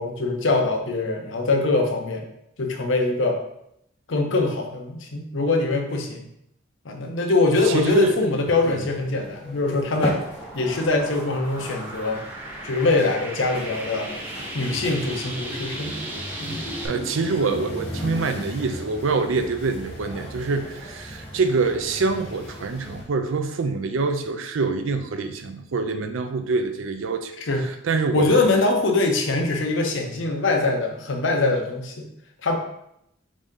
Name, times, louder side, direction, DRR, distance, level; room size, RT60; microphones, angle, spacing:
voice 1, 0.0-2.3 2.6-3.4 4.1-6.3 6.8-10.2 10.5-12.2 12.6-14.1 14.5-15.9 16.4-16.6 27.4-27.7 28.1-32.1 32.4-32.6, left 3 dB, 70° left, 3 dB, 0.7 m, -23 dB
sound 1, 7.5-23.0, left 1 dB, 30° left, 1.4 m, -37 dB
voice 2, 7.7-8.2 8.7-8.8 16.8-27.3 27.6-28.5, right 4 dB, 80° right, 8 dB, 0.5 m, -25 dB
sound 2, 9.9-16.9, right 1 dB, 10° right, 0.6 m, -37 dB
5.0 x 2.7 x 3.6 m, 0.77 s
head